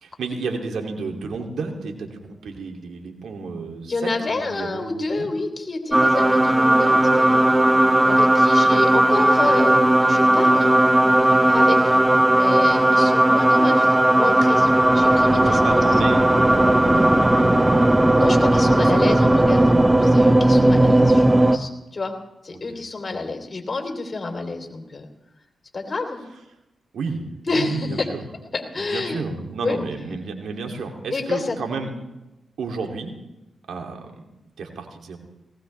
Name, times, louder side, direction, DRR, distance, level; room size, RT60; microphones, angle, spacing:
voice 1, 0.0-5.3 15.4-18.2 18.8-19.3 21.3-21.7 22.5-22.6 26.9-28.2 28.8-31.9 32.6-33.1 33.7-34.2 34.6-35.2, right 4 dB, 75° right, 3 dB, 2.6 m, -32 dB
voice 2, 3.9-7.8 8.0-9.8 10.1-10.8 11.4-12.0 12.3-15.8 18.2-22.1 22.4-25.0 25.7-26.2 27.5-28.1 28.5-29.2 29.6-29.8 31.1-31.6, left 3 dB, 40° left, 3 dB, 3.1 m, -29 dB
sound 1, 5.9-21.6, right 1 dB, 15° right, 0.9 m, -16 dB
19.0 x 17.0 x 3.3 m, 0.97 s
supercardioid pair, 40°, 0 cm